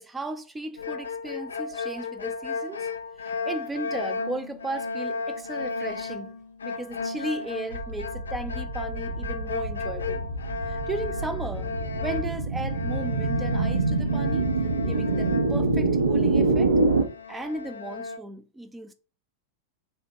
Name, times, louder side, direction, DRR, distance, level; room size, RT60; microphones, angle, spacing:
voice 1, 0.0-2.9 3.2-10.3 10.7-11.7 12.0-14.5 14.9-16.7 17.3-18.9, right 2 dB, 10° right, 0.4 m, -36 dB
sound 1, 0.8-16.2 16.5-16.6 17.0-18.2, left 4 dB, 70° left, 0.3 m, -34 dB
sound 2, 7.7-17.0, right 3 dB, 75° right, 0.5 m, -26 dB
2.7 x 2.1 x 3.7 m
figure-of-eight pair, 90°, 0 cm